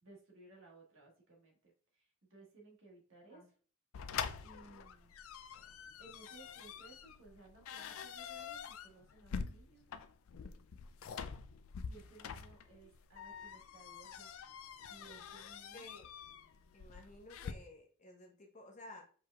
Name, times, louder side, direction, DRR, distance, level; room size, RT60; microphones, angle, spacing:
voice 1, 0.0-3.5 4.4-5.7 6.0-9.9 11.8-14.3 14.9-15.8, right 3 dB, 60° right, -1 dB, 1.6 m, -60 dB
sound 1, 3.9-17.5, left 7 dB, 65° left, 0.4 m, -46 dB
voice 2, 15.7-16.1 16.7-19.0, left 2 dB, 35° left, 0 dB, 1.1 m, -54 dB
4.8 x 4.5 x 2.4 m, 0.42 s
head